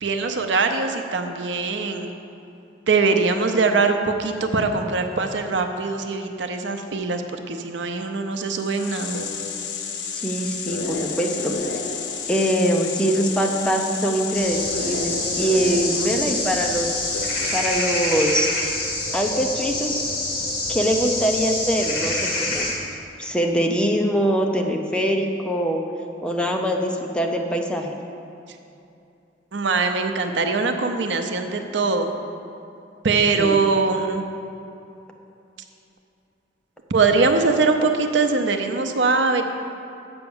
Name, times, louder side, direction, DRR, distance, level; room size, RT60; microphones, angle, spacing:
voice 1, 0.0-2.1 2.9-9.2 29.5-32.1 33.0-34.2 36.9-39.4, right 4 dB, 80° right, 6 dB, 0.7 m, -22 dB
sound 1, 8.4-18.0, left 5 dB, 75° left, 0.8 m, -31 dB
voice 2, 10.1-11.6 12.3-17.1 17.5-18.5 19.1-20.0 20.7-22.7 23.2-25.8 26.2-27.9 33.3-33.7, equal, 5° left, 2 dB, 0.6 m, -23 dB
sound 2, 14.3-22.7, left 2 dB, 55° left, 2.0 m, -26 dB
7.8 x 5.8 x 7.1 m, 2.7 s
head